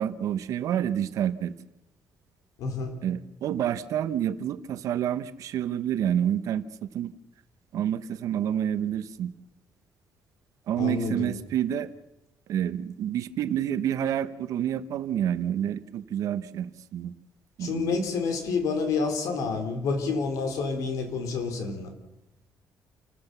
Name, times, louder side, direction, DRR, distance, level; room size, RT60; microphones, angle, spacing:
voice 1, 0.0-1.5 3.0-7.1 7.7-9.3 10.7-11.9 12.5-17.1 17.6-18.0, right 10 dB, 75° right, 12 dB, 1.2 m, -28 dB
voice 2, 2.6-3.0 10.8-11.4 17.6-21.9, left 4 dB, 85° left, 6 dB, 3.9 m, -28 dB
29.0 x 14.5 x 6.9 m, 0.94 s
cardioid pair, 115°, 6 cm